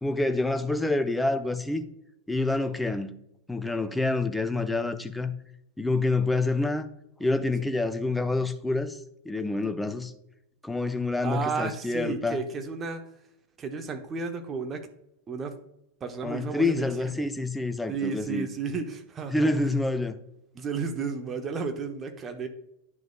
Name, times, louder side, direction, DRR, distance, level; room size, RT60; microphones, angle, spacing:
voice 1, 0.0-1.8 2.3-3.1 3.5-5.3 5.8-6.9 7.2-9.0 9.3-10.1 10.6-12.4 16.2-18.5 19.3-20.1, left 2 dB, 5° left, 0.6 m, -27 dB
voice 2, 11.2-13.0 13.6-14.9 15.3-15.6 16.0-16.9 17.1-17.3 17.9-19.5 20.5-22.5, right 5 dB, 25° right, 0.9 m, -33 dB
10.5 x 6.1 x 2.3 m
figure-of-eight pair, 90°, 0 cm